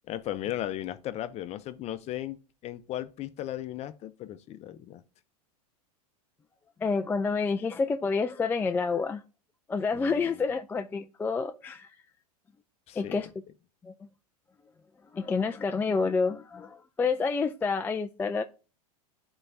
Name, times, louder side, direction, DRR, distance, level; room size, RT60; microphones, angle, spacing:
voice 1, 0.1-5.0 9.9-10.4 12.9-13.2, left 13 dB, 35° left, 0.7 m, -36 dB
voice 2, 6.8-9.2 9.7-11.9 13.0-13.3 13.8-13.9 15.1-18.4, left 4 dB, 10° left, 0.3 m, -28 dB
11.0 x 4.0 x 2.7 m
hypercardioid pair, 110°, 20 cm